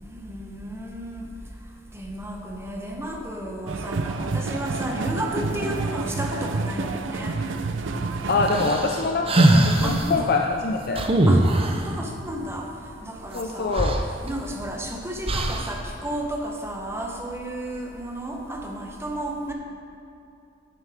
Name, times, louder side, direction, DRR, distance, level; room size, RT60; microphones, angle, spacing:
voice 1, 0.0-1.2 1.9-7.4 8.6-8.9 9.8-10.3 11.3-12.7 13.0-13.8 14.2-19.5, right 1 dB, 15° right, 1 dB, 0.9 m, -33 dB
sound 1, 3.7-8.8, right 3 dB, 80° right, 0.5 m, -29 dB
voice 2, 8.3-11.0 13.3-14.0, left 3 dB, 55° left, 1 dB, 0.5 m, -24 dB
sound 2, 8.5-10.1 11.0-11.9 13.4-13.5 13.7-14.7 15.3-15.8, right 1 dB, 30° right, 0.6 m, -20 dB
10.5 x 7.2 x 3.5 m, 2.6 s
head